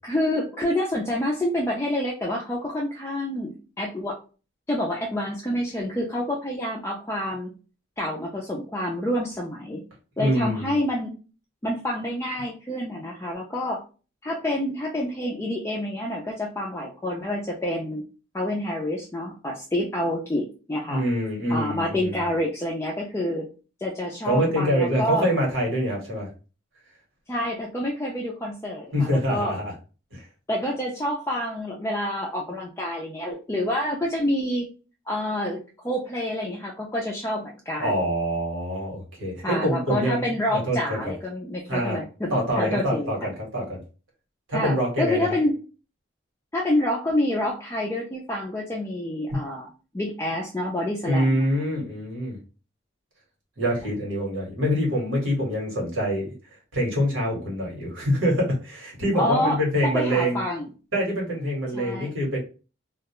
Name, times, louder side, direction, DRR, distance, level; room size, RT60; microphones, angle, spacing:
voice 1, 0.0-4.2 4.7-7.5 8.0-9.8 10.2-11.1 11.6-13.8 14.2-18.0 18.3-21.0 21.5-23.5 23.8-25.3 27.3-29.5 30.5-34.7 35.1-35.6 35.8-38.0 39.4-42.3 42.6-43.1 44.5-45.6 46.5-49.7 49.9-51.5 59.2-59.6 59.8-60.7 61.7-62.1, left 1 dB, 15° left, -2 dB, 0.3 m, -28 dB
voice 2, 10.2-10.7 20.9-22.2 24.3-26.3 28.9-29.7 30.1-30.2 37.8-40.3 40.5-41.0 41.7-42.0 42.3-43.8 44.5-45.4 51.0-52.4 53.6-56.3 56.7-60.4 60.9-62.4, equal, 85° right, -2 dB, 1.2 m, -25 dB
2.3 x 2.2 x 2.9 m, 0.34 s
head